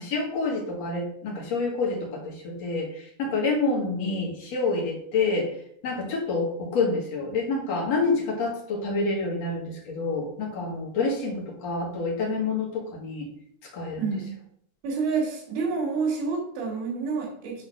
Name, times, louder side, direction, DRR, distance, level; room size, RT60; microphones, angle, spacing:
voice 1, 0.0-5.5 5.8-13.3 13.7-14.0, left 3 dB, 50° left, -2 dB, 2.2 m, -28 dB
voice 2, 14.0-14.3 14.8-17.7, right 4 dB, 85° right, -4 dB, 4.0 m, -28 dB
8.3 x 3.8 x 6.2 m, 0.67 s
omnidirectional pair, 5.0 m